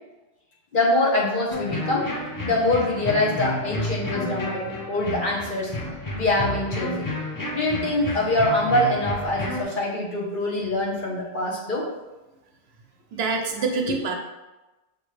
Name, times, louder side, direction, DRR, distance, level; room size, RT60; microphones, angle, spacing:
voice 1, 0.7-2.1 2.4-5.7 6.1-7.3 7.5-11.9, left 1 dB, 55° left, -3 dB, 1.1 m, -24 dB
sound 1, 1.5-9.6, left 1 dB, 25° left, 0.5 m, -31 dB
voice 2, 13.1-14.1, right 4 dB, 80° right, 3 dB, 0.9 m, -25 dB
5.8 x 2.8 x 3.2 m, 1.1 s
omnidirectional pair, 1.0 m